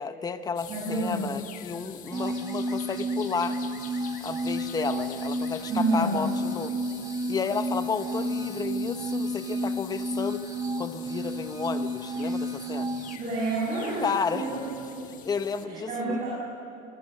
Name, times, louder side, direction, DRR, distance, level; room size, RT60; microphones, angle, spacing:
voice 1, 0.0-3.6 4.2-6.7 7.3-10.4 10.8-12.9 14.0-14.4 15.2-16.2, left 5 dB, 20° left, 10 dB, 1.0 m, -32 dB
sound 1, 0.6-15.7, left 10 dB, 40° left, 1.3 m, -46 dB
voice 2, 0.7-1.4 5.7-6.3 13.2-15.1 15.6-16.3, right 2 dB, 40° right, -5 dB, 7.5 m, -29 dB
sound 2, 2.1-13.2, right 1 dB, 15° right, 0.9 m, -31 dB
27.5 x 23.0 x 6.7 m, 2.9 s
cardioid pair, 150°, 21 cm